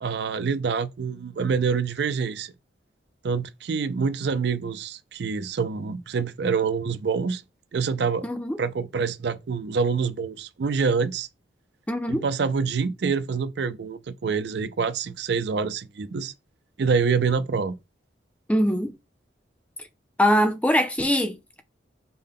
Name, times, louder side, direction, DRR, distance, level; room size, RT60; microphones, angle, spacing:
voice 1, 0.0-2.5 3.2-7.4 7.7-8.2 8.6-11.3 12.1-16.3 16.8-17.7, right 5 dB, 65° right, 0.4 m, -26 dB
voice 2, 8.2-8.6 11.9-12.2 18.5-18.9 20.2-21.6, equal, 5° left, 0.4 m, -22 dB
5.2 x 2.2 x 3.6 m
head